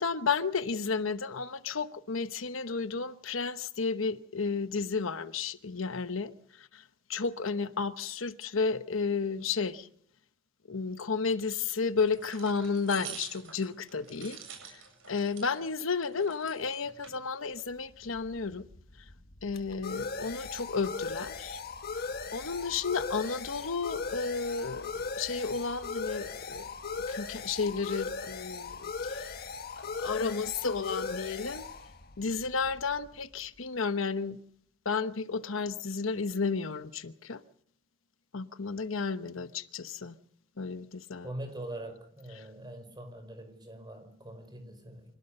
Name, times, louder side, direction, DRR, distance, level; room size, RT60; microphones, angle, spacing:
voice 1, 0.0-6.8 7.1-9.9 10.7-14.4 14.7-14.8 15.1-18.6 19.4-21.6 22.3-26.7 27.1-29.3 29.8-31.6 32.2-34.4 34.8-37.4 38.3-40.1 40.6-41.3 42.3-42.4, left 4 dB, 80° left, 1.0 m, -32 dB
sound 1, 12.0-15.6 16.0-17.2, right 7 dB, 75° right, 7.9 m, -47 dB
sound 2, 17.9-33.3, left 4 dB, 50° left, 1.5 m, -39 dB
voice 2, 41.2-45.0, right 1 dB, 20° right, 5.9 m, -43 dB
26.5 x 18.0 x 6.7 m
head